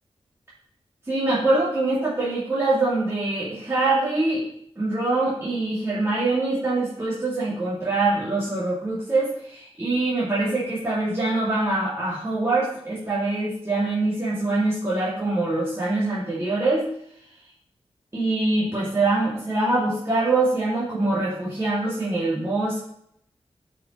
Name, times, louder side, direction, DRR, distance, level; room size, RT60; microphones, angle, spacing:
voice 1, 1.1-4.4 4.8-16.9 18.1-22.8, right 2 dB, 25° right, -8 dB, 2.2 m, -24 dB
8.3 x 5.2 x 3.1 m, 0.70 s
cardioid pair, 50°, 11 cm